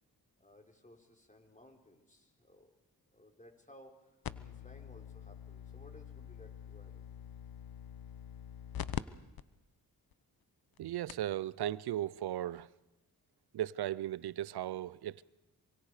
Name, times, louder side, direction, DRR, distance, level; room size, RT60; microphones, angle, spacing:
voice 1, 0.4-2.8 3.1-7.1, left 1 dB, 20° left, 4.3 m, -59 dB
sound 1, 4.2-9.0 9.4-9.5 10.1-10.2 10.8-10.9 11.1-11.3 12.6-12.7, left 9 dB, 65° left, 0.9 m, -44 dB
voice 2, 10.8-12.7 13.5-15.2, right 12 dB, 80° right, 0.7 m, -36 dB
26.5 x 24.0 x 5.0 m
cardioid pair, 55°, 38 cm